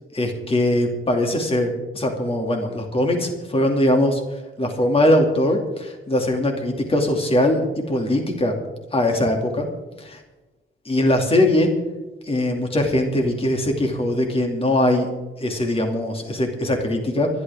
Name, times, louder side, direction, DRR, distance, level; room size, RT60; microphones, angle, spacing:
voice 1, 0.1-4.2 4.6-7.6 7.9-8.5 8.9-9.7 10.0-10.2 10.9-11.7 12.2-15.1 15.4-17.3, left 1 dB, 25° left, 3 dB, 2.5 m, -21 dB
24.5 x 11.5 x 3.6 m, 1.1 s
wide cardioid pair, 155°, 21 cm